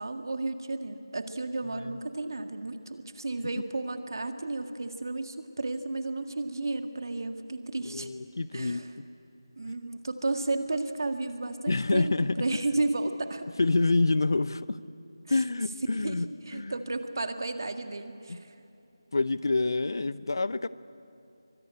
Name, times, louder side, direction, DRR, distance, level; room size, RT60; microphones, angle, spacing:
voice 1, 0.0-8.1 8.5-8.9 9.6-13.5 15.9-18.5, right 2 dB, 55° right, 7 dB, 1.9 m, -33 dB
voice 2, 7.8-9.0 11.7-12.4 13.6-14.8 15.3-16.3 16.5-16.8 18.3-18.4 19.1-20.7, left 3 dB, 55° left, 17 dB, 0.7 m, -27 dB
24.0 x 22.0 x 9.8 m, 2.7 s
figure-of-eight pair, 165°, 3 cm